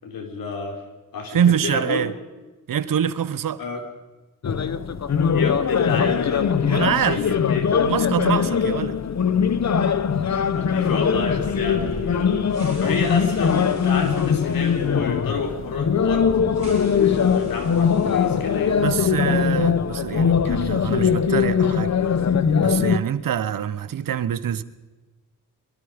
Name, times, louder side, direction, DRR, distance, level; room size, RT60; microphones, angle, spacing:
voice 1, 0.0-0.8 1.1-2.1 3.6-3.8 5.3-6.5 7.0-7.7 10.5-16.3 16.9-18.7, left 4 dB, 90° left, 4.5 m, -30 dB
voice 2, 1.3-2.1 2.7-3.6 6.6-7.2 7.8-9.0 18.8-21.9 22.6-24.6, right 9 dB, 75° right, 1.1 m, -24 dB
sound 1, 4.4-23.0, left 7 dB, 55° left, 1.2 m, -21 dB
sound 2, 10.7-18.9 19.2-19.3 19.9-21.3, right 1 dB, 20° right, 8.0 m, -42 dB
24.0 x 23.0 x 5.2 m
cardioid pair, 90°, 33 cm